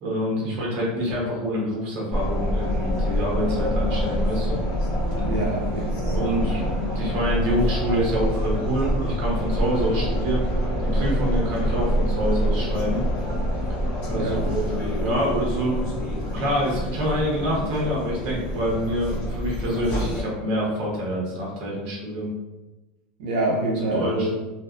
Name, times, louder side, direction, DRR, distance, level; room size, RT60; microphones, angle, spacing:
voice 1, 0.0-4.6 6.1-10.5 10.9-13.0 14.1-14.7 15.0-15.9 16.3-22.3 23.8-24.4, equal, 40° right, -3 dB, 0.8 m, -26 dB
sound 1, 2.1-20.2, equal, 20° left, 0.7 m, -26 dB
voice 2, 5.2-6.3 14.1-14.5 23.2-24.4, right 2 dB, 70° right, -2 dB, 0.4 m, -26 dB
2.5 x 2.3 x 2.3 m, 1.1 s
supercardioid pair, 180°, 4 cm